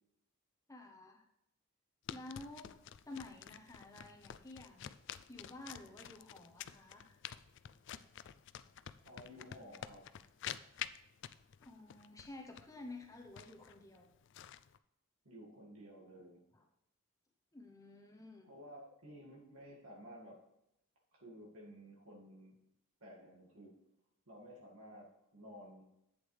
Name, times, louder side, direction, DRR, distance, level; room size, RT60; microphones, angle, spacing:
voice 1, 0.7-1.3 2.1-2.7 3.1-4.9 5.3-7.2 11.6-14.1 16.5-16.6 17.5-18.5, left 2 dB, 15° left, 2 dB, 0.7 m, -51 dB
sound 1, 2.1-14.8, left 10 dB, 55° left, 0.3 m, -49 dB
voice 2, 9.0-10.1 15.2-16.4 18.4-20.5 21.1-22.6 23.0-23.8 24.3-25.9, equal, 75° right, -2 dB, 2.0 m, -54 dB
11.0 x 8.1 x 3.3 m, 0.82 s
head